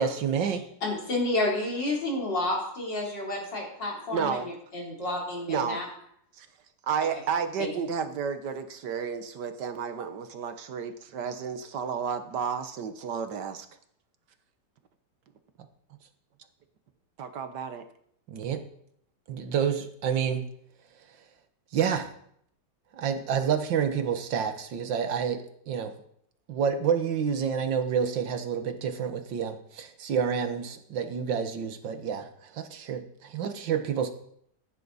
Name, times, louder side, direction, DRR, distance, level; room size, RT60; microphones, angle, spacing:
voice 1, 0.0-0.7 18.3-18.6 19.3-20.5 21.7-22.1 22.9-25.9 26.5-34.1, right 7 dB, 85° right, 8 dB, 1.9 m, -29 dB
voice 2, 0.8-5.9 7.6-7.7, left 2 dB, 75° left, -2 dB, 4.4 m, -30 dB
voice 3, 4.1-4.5 5.5-5.8 6.4-6.5 6.9-13.7 17.2-17.8, right 6 dB, 70° right, 9 dB, 1.6 m, -32 dB
15.0 x 10.5 x 4.1 m, 0.68 s
omnidirectional pair, 2.0 m